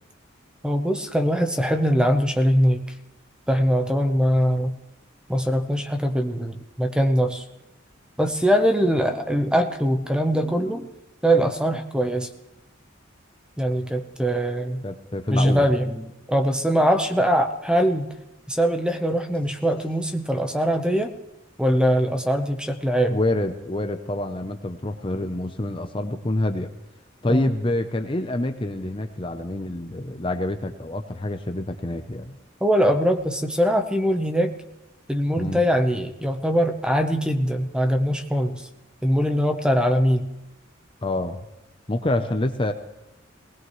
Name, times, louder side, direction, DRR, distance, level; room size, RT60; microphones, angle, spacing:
voice 1, 0.6-2.8 3.5-4.8 5.3-7.4 8.2-10.9 11.2-12.3 13.6-14.8 15.3-18.1 18.5-21.1 21.6-23.2 27.3-27.5 32.6-34.5 35.1-38.7 39.0-40.3, equal, 5° right, 6 dB, 0.9 m, -22 dB
voice 2, 14.8-15.7 23.1-26.7 27.2-32.4 35.4-35.6 41.0-41.5 41.9-42.7, left 1 dB, 25° left, 7 dB, 0.7 m, -27 dB
20.0 x 19.0 x 3.2 m, 0.96 s
head